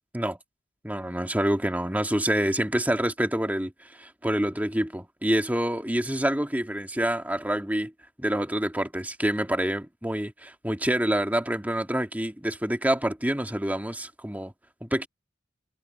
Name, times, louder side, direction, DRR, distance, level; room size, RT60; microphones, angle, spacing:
voice 1, 0.8-7.9 8.2-14.5 14.8-15.1, right 1 dB, 10° right, 2.1 m, -27 dB
head